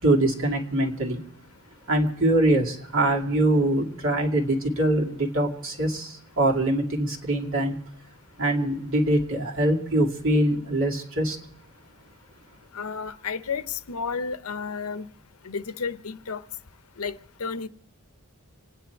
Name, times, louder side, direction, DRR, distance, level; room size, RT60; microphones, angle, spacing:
voice 1, 0.0-1.2 1.9-7.8 8.4-11.4, right 1 dB, 65° right, 2.3 m, -23 dB
voice 2, 12.7-15.1 15.4-16.4 17.0-17.7, left 5 dB, 80° left, 0.7 m, -32 dB
28.0 x 9.5 x 4.5 m
head